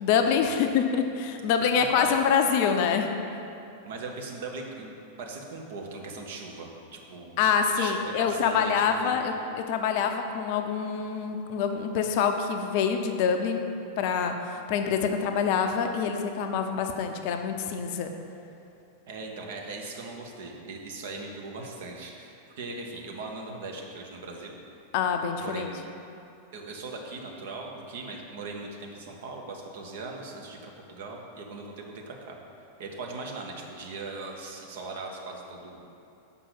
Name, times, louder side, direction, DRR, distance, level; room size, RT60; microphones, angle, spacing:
voice 1, 0.0-3.2 7.4-13.6 14.0-18.1 24.9-25.7, left 6 dB, 45° left, 5 dB, 0.5 m, -26 dB
voice 2, 1.5-2.2 3.8-7.4 7.8-9.3 19.1-24.6 25.3-25.7 26.5-35.9, right 3 dB, 55° right, 1 dB, 1.0 m, -39 dB
5.7 x 5.3 x 6.3 m, 2.7 s
figure-of-eight pair, 90°, 0 cm